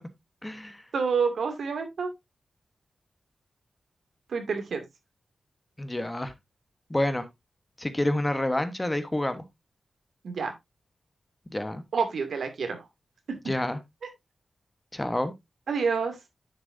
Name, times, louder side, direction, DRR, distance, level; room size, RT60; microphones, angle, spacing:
voice 1, 0.4-0.8 5.8-6.3 6.9-7.2 7.8-9.4 11.5-11.8 13.4-13.8 14.9-15.3, left 1 dB, 15° left, 1.2 m, -28 dB
voice 2, 0.9-2.1 4.3-4.8 10.2-10.5 11.9-12.9 15.7-16.2, right 5 dB, 90° right, 2.5 m, -28 dB
9.9 x 7.6 x 2.7 m
wide cardioid pair, 135°, 0 cm